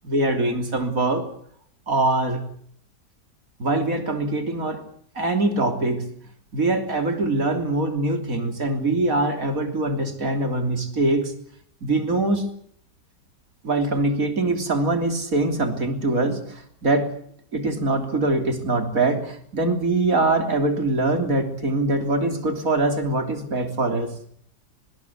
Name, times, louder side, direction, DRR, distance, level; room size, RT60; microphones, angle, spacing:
voice 1, 0.0-1.3 1.9-2.4 3.6-4.8 5.2-6.0 6.5-11.3 11.8-12.5 13.6-17.1 17.5-24.1, right 2 dB, 50° right, 7 dB, 3.8 m, -23 dB
21.5 x 20.5 x 8.4 m, 0.64 s
omnidirectional pair, 1.8 m